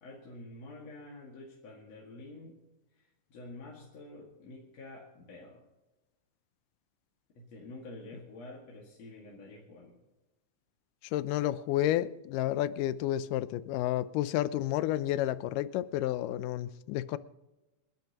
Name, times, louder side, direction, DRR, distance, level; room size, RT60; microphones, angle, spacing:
voice 1, 0.0-2.6 2.9-5.6 7.4-9.9, left 2 dB, 55° left, 3.1 m, -48 dB
voice 2, 11.1-17.2, left 13 dB, 85° left, 2.2 m, -31 dB
29.5 x 12.0 x 3.0 m
omnidirectional pair, 3.8 m